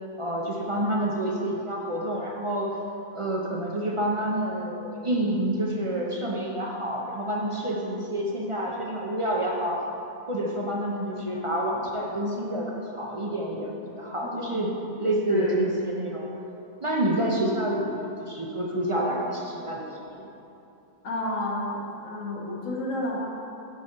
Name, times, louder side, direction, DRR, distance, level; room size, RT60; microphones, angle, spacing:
voice 1, 0.2-2.7 3.1-9.8 10.3-14.7 15.0-16.3 16.8-20.3, right 1 dB, 50° right, -2 dB, 0.4 m, -28 dB
voice 2, 14.2-14.6 15.3-15.7 21.0-23.3, left 1 dB, 65° left, -3 dB, 1.5 m, -31 dB
8.9 x 4.1 x 5.1 m, 2.8 s
omnidirectional pair, 1.5 m